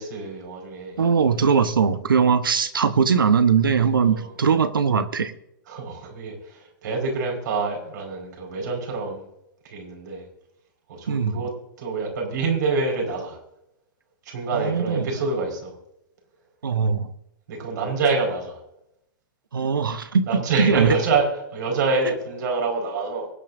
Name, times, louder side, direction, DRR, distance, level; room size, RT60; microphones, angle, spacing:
voice 1, 0.0-1.0 4.0-4.3 5.7-9.3 9.6-10.2 10.9-11.5 11.8-13.4 14.2-15.7 17.5-18.6 20.2-23.3, right 3 dB, 60° right, 2 dB, 5.0 m, -26 dB
voice 2, 1.0-5.3 11.1-11.4 14.5-15.1 16.6-17.1 19.5-20.3 20.6-20.9, right 6 dB, 80° right, 11 dB, 1.1 m, -20 dB
24.0 x 8.9 x 2.7 m, 0.82 s
hypercardioid pair, 110°, 11 cm